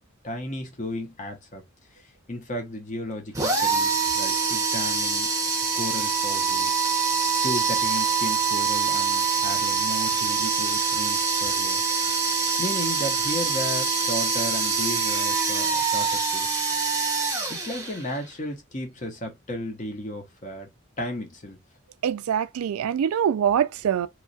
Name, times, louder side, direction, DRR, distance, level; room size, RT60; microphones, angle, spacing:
voice 1, 0.2-1.6 1.9-5.3 5.7-6.7 7.4-11.8 12.1-12.3 12.6-16.5 17.5-20.7 21.0-21.6, left 1 dB, 35° left, 0.8 m, -34 dB
sound 1, 3.3-18.2, right 5 dB, 15° right, 0.7 m, -25 dB
voice 2, 22.0-24.1, right 8 dB, 85° right, 0.3 m, -24 dB
3.0 x 2.3 x 2.5 m
head